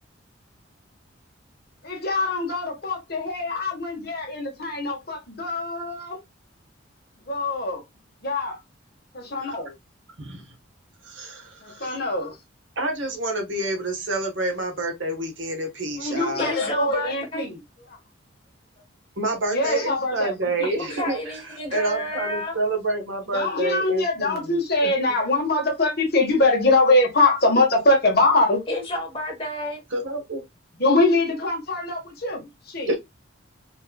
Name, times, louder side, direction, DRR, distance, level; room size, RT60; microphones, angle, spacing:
voice 1, 1.8-6.2 7.3-7.8 8.2-8.6 9.1-9.7 11.6-12.4 16.0-17.6 17.9-18.0 19.5-20.9 23.3-28.6 30.8-32.9, left 2 dB, 50° left, 1.4 m, -23 dB
voice 2, 11.0-11.9 12.8-16.5 19.2-21.2 21.7-24.5 24.8-24.9 29.9-30.4 32.9-33.0, right 2 dB, 70° right, 1.3 m, -28 dB
voice 3, 16.4-17.5 20.8-22.6 28.7-29.8, left 1 dB, 25° left, 2.0 m, -30 dB
4.5 x 3.2 x 2.3 m
head